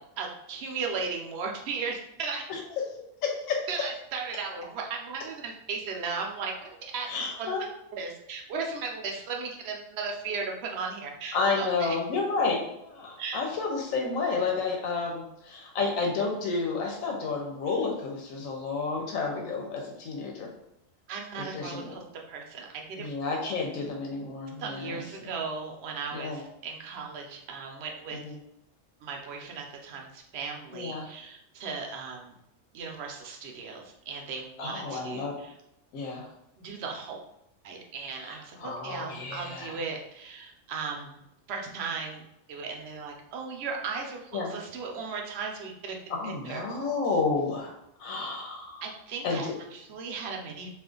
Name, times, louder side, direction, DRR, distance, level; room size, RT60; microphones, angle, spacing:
voice 1, 0.2-2.5 3.7-7.1 7.4-7.5 7.9-12.0 13.2-13.4 21.1-23.1 24.6-28.2 29.0-32.3 32.7-35.5 36.6-37.2 37.6-41.2 41.5-42.2 42.5-46.0 46.2-46.6 48.8-50.7, right 5 dB, 60° right, 1 dB, 0.8 m, -36 dB
voice 2, 3.2-3.6 7.1-7.6 11.3-20.5 21.4-22.0 23.0-25.0 26.1-26.4 28.2-28.3 30.7-31.1 34.6-35.4 35.9-36.3 38.2-39.8 44.3-44.5 46.1-48.8 49.2-49.5, left 4 dB, 85° left, 0 dB, 1.0 m, -31 dB
2.5 x 2.4 x 3.6 m, 0.81 s
omnidirectional pair, 1.4 m